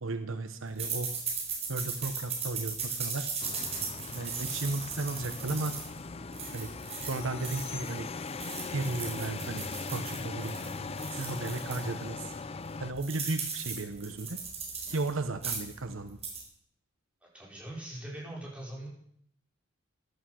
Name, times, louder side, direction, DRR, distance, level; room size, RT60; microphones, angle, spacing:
voice 1, 0.0-1.1 1.7-3.3 4.1-5.7 6.5-6.7 7.0-8.1 8.7-10.5 11.1-12.3 12.8-14.4 14.9-16.2, right 2 dB, 70° right, 9 dB, 1.0 m, -34 dB
sound 1, 0.8-7.9 8.3-11.9 12.3-12.4 12.6-15.1 15.3-15.8 16.1-16.4, right 5 dB, 30° right, 4.3 m, -37 dB
sound 2, 3.4-12.9, left 4 dB, 30° left, 0.5 m, -40 dB
voice 2, 17.3-18.9, right 1 dB, 5° right, -4 dB, 5.0 m, -41 dB
14.5 x 11.5 x 6.4 m, 0.68 s
head